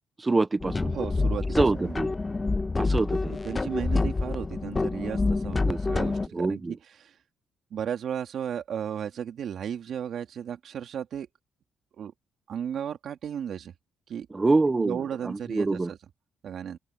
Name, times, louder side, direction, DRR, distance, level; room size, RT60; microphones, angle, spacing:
voice 1, 0.2-0.9 1.6-2.1 2.8-3.3 5.6-5.8 6.3-6.8 14.3-15.9, right 3 dB, 25° right, 1.1 m, -25 dB
sound 1, 0.6-6.3, left 3 dB, 25° left, 0.3 m, -27 dB
voice 2, 0.9-2.0 3.4-6.6 7.0-7.1 7.7-11.3 12.0-12.1 12.5-13.7 14.1-14.3 14.8-16.0 16.4-16.8, right 8 dB, 65° right, 2.5 m, -34 dB
open air
cardioid pair, 90°, 0 cm